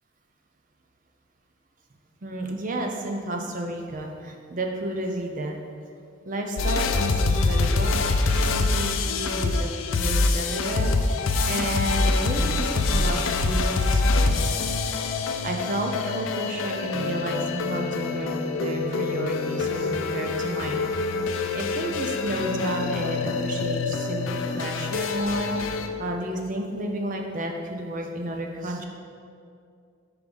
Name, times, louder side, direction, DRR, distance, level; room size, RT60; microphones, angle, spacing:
voice 1, 2.2-5.6 6.3-14.6 15.4-20.8 21.5-28.8, right 1 dB, 40° right, 2 dB, 0.5 m, -31 dB
sound 1, 6.6-25.9, left 3 dB, 80° left, 0.4 m, -25 dB
5.3 x 4.8 x 5.0 m, 2.4 s
head